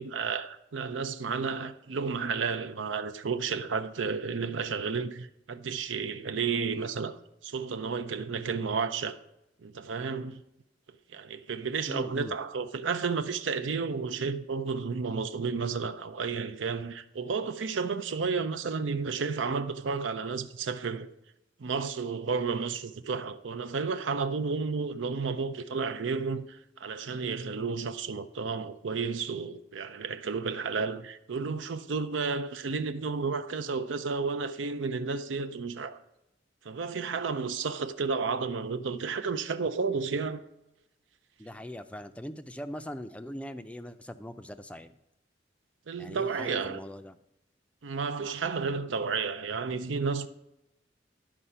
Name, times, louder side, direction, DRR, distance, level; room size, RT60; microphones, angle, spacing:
voice 1, 0.0-7.1 7.4-9.2 9.6-10.4 11.1-21.1 21.6-36.0 36.7-40.4 45.9-46.8 47.8-50.3, right 5 dB, 85° right, 0.6 m, -32 dB
voice 2, 11.9-12.4 41.4-45.0 46.0-47.2, equal, 5° left, 0.4 m, -41 dB
11.5 x 4.8 x 5.5 m
head